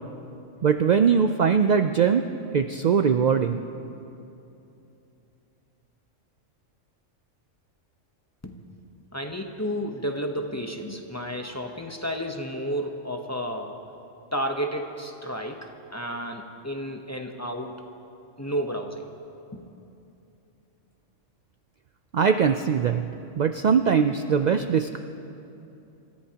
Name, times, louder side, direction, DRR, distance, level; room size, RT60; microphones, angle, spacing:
voice 1, 0.6-2.2 2.5-3.6 22.1-23.0 23.4-25.0, right 6 dB, 70° right, 7 dB, 0.4 m, -21 dB
voice 2, 9.1-13.8 14.3-17.8 18.4-19.1 19.5-19.6, equal, 15° left, 3 dB, 0.8 m, -32 dB
27.5 x 14.5 x 2.9 m, 2.8 s
omnidirectional pair, 1.3 m